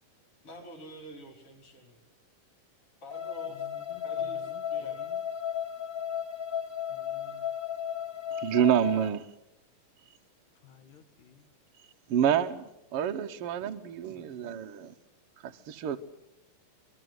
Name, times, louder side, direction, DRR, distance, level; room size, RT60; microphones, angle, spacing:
voice 1, 0.4-2.0 3.0-3.7 4.0-5.0, right 1 dB, 40° left, 6.0 m, -48 dB
sound 1, 3.1-9.1, left 9 dB, 20° left, 1.6 m, -35 dB
voice 2, 3.5-5.2 6.9-7.5 10.6-11.5 14.1-14.5, left 7 dB, 70° left, 3.4 m, -55 dB
voice 3, 8.3-9.3 12.1-14.9 15.4-16.0, right 9 dB, 65° right, 1.4 m, -28 dB
25.5 x 22.5 x 8.0 m
omnidirectional pair, 3.9 m